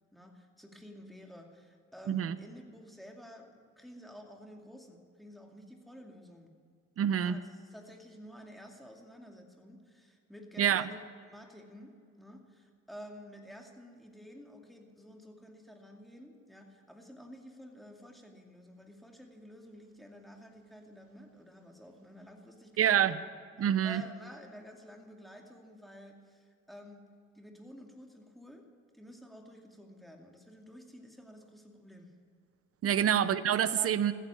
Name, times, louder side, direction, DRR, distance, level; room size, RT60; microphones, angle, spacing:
voice 1, 0.1-6.5 7.2-11.0 11.2-23.1 23.8-27.1 27.3-28.6 28.9-32.1 32.9-33.1 33.8-34.0, equal, ahead, 2 dB, 2.4 m, -51 dB
voice 2, 7.0-7.4 10.6-10.8 22.8-23.2 23.6-24.0 32.8-34.1, right 9 dB, 50° right, 14 dB, 0.8 m, -27 dB
14.5 x 10.0 x 8.4 m, 2.1 s
cardioid pair, 90°, 30 cm